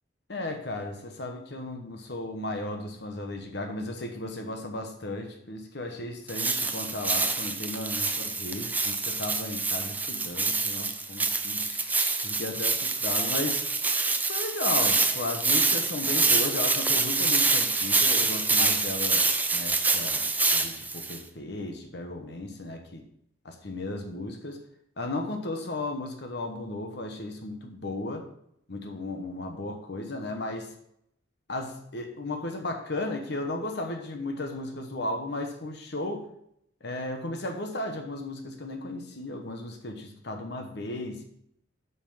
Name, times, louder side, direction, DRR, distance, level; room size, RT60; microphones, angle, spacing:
voice 1, 0.3-11.8 12.2-13.6 14.3-23.0 23.4-24.7 25.0-28.3 28.7-30.7 31.5-36.3 36.8-41.2, left 2 dB, 60° left, 4 dB, 1.1 m, -35 dB
sound 1, 6.3-21.2, right 3 dB, 10° right, 0.5 m, -26 dB
8.2 x 5.6 x 5.5 m, 0.73 s
head